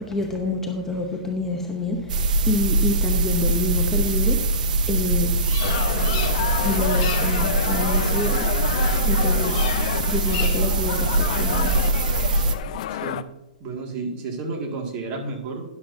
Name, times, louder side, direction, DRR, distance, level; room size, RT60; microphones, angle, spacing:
voice 1, 0.0-5.5 6.3-11.7 12.4-12.6, left 3 dB, 10° left, 2 dB, 0.8 m, -28 dB
sound 1, 2.1-12.6, right 3 dB, 70° right, 0.9 m, -22 dB
Bird vocalization bird call bird song, 5.4-6.6 6.9-7.4 9.5-9.9 10.2-10.8, left 9 dB, 35° left, 1.1 m, -35 dB
sound 2, 5.6-13.2, left 12 dB, 55° left, 0.4 m, -29 dB
voice 2, 12.9-13.2 13.6-15.6, right 3 dB, 30° right, 2 dB, 2.0 m, -31 dB
12.5 x 10.5 x 2.7 m, 1.0 s
hypercardioid pair, 145°, 5 cm